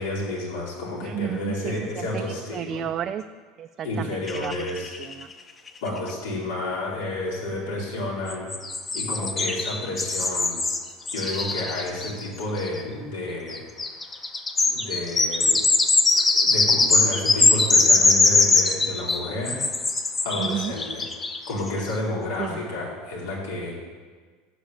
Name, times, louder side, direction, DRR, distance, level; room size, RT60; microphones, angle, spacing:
voice 1, 0.0-2.8 3.8-4.9 5.8-8.5 8.9-10.5 11.1-13.6 14.7-15.6 16.3-19.7 20.2-21.0 21.5-23.8, left 2 dB, 85° left, -4 dB, 4.2 m, -30 dB
voice 2, 1.0-3.2 3.6-4.5 5.0-5.3 20.4-20.7 22.4-22.6, right 10 dB, 30° right, 7 dB, 0.3 m, -32 dB
sound 1, 4.3-5.3 5.7-5.8 6.0-6.1 8.3-12.8 13.5-21.7, left 3 dB, 15° left, 0.6 m, -22 dB
12.5 x 5.2 x 9.0 m, 1.5 s
supercardioid pair, 160°, 0 cm